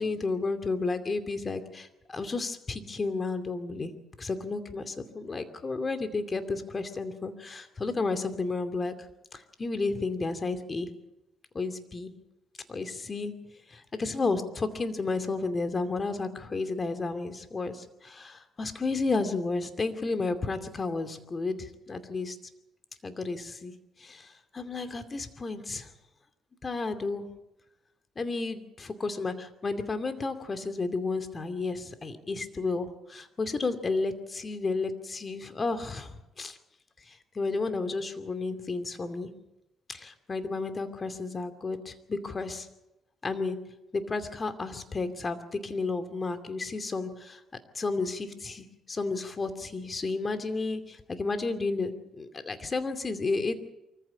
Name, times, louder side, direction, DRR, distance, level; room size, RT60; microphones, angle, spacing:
voice 1, 0.0-3.9 4.2-8.9 9.3-10.9 11.5-12.1 12.7-13.3 13.7-22.4 23.0-23.7 24.0-25.9 26.6-27.3 28.2-36.6 37.0-39.3 39.9-42.7 43.2-43.6 43.9-47.4 47.7-53.6, left 3 dB, 35° left, 9 dB, 2.5 m, -32 dB
24.5 x 15.0 x 8.5 m, 0.93 s
cardioid pair, 90°, 0 cm